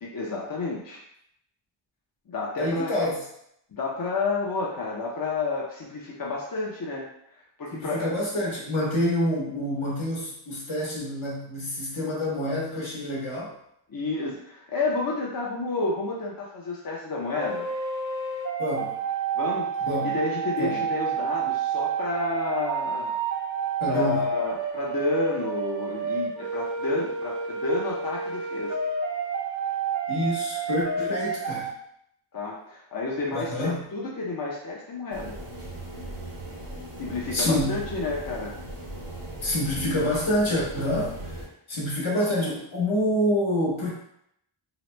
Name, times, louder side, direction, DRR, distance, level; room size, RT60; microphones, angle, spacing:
voice 1, 0.0-1.0 2.3-2.9 3.7-7.1 7.6-8.1 13.9-17.7 19.3-19.7 20.0-23.1 23.9-28.7 32.3-35.4 37.0-38.5, left 3 dB, 45° left, -4 dB, 0.6 m, -30 dB
voice 2, 2.6-3.2 7.7-13.6 18.6-19.0 19.9-20.2 20.6-20.8 23.8-24.3 30.1-31.7 33.3-33.8 37.3-37.8 39.4-43.9, left 1 dB, 70° left, -4 dB, 1.1 m, -27 dB
sound 1, 17.3-31.7, right 5 dB, 40° right, 0.4 m, -29 dB
sound 2, 35.1-41.5, right 1 dB, 75° right, 0.8 m, -38 dB
2.9 x 2.1 x 3.1 m, 0.73 s
wide cardioid pair, 55°, 50 cm